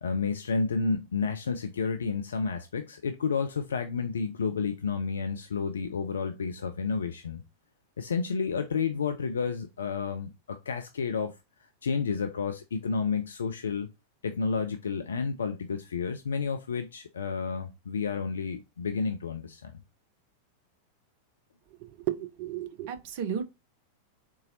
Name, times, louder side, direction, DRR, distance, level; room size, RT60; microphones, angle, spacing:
voice 1, 0.0-7.4 8.0-13.9 14.2-19.8, left 5 dB, 70° left, 0.3 m, -31 dB
voice 2, 21.8-23.4, right 9 dB, 50° right, 0.6 m, -33 dB
3.9 x 2.8 x 2.6 m
figure-of-eight pair, 90°, 0 cm